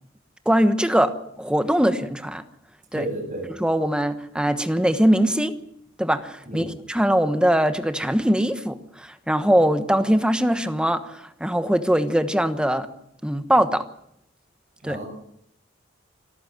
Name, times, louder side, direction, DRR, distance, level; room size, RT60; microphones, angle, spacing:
voice 1, 0.4-2.4 2.9-3.0 3.6-5.6 6.0-12.9 13.2-13.8 14.8-15.0, equal, 5° right, 9 dB, 1.2 m, -21 dB
voice 2, 2.9-3.5 6.5-6.8 14.8-15.1, right 2 dB, 40° right, 3 dB, 7.8 m, -32 dB
26.0 x 14.0 x 7.6 m, 0.74 s
head